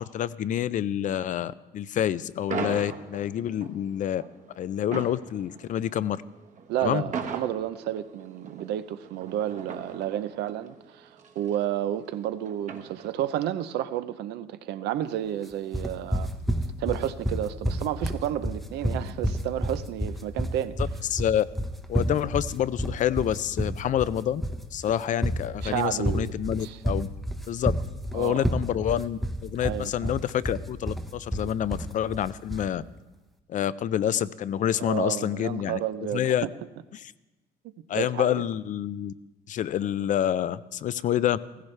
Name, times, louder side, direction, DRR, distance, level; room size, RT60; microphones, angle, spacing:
voice 1, 0.0-4.2 4.6-6.2 6.8-7.0 21.1-21.4 21.9-24.4 24.7-27.1 27.5-27.7 28.1-32.8 33.5-35.8 36.1-36.5 36.9-37.0 37.9-39.1 39.5-41.4, left 10 dB, 50° left, 0.4 m, -27 dB
sound 1, 2.5-13.4, right 5 dB, 45° right, 1.2 m, -39 dB
voice 2, 6.7-16.3 16.8-20.8 25.6-26.3 26.6-26.8 28.1-28.5 29.6-30.1 34.8-36.5 37.6-38.3, right 11 dB, 80° right, 0.6 m, -31 dB
sound 2, 15.7-32.7, equal, ahead, 0.7 m, -29 dB
16.0 x 15.0 x 3.3 m
cardioid pair, 110°, 17 cm